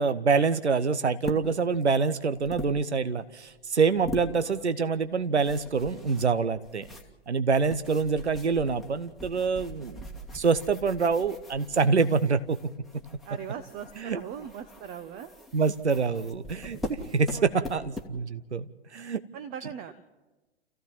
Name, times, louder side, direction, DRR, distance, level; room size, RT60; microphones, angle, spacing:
voice 1, 0.0-6.9 7.3-10.1 10.3-12.6 14.0-14.2 15.5-19.2, right 5 dB, 85° right, 12 dB, 0.9 m, -26 dB
sound 1, 1.2-1.8 2.3-3.2 4.0-4.6 4.9-18.2, left 1 dB, ahead, 1.7 m, -42 dB
voice 2, 4.3-4.7 13.2-15.3 16.1-16.5 17.3-17.7 19.3-20.0, right 8 dB, 25° right, 11 dB, 0.9 m, -40 dB
28.0 x 15.0 x 7.4 m, 1.2 s
figure-of-eight pair, 110°, 33 cm